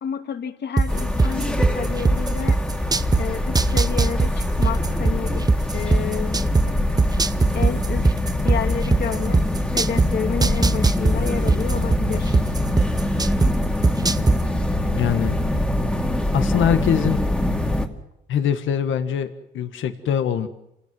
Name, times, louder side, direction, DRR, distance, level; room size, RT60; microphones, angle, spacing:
voice 1, 0.0-2.6 3.2-5.4 5.7-6.4 7.5-8.0 8.4-9.4 9.7-12.4, left 7 dB, 55° left, 7 dB, 2.7 m, -30 dB
sound 1, 0.8-3.2 3.6-6.6 7.0-10.1 10.4-13.5 13.8-14.4, right 3 dB, 20° right, 0.9 m, -18 dB
sound 2, 0.9-17.9, left 1 dB, 5° left, 2.5 m, -24 dB
voice 2, 14.9-15.4 16.3-17.2 18.3-20.5, left 9 dB, 75° left, 10 dB, 1.6 m, -23 dB
27.5 x 17.5 x 7.8 m, 0.85 s
cardioid pair, 90°, 20 cm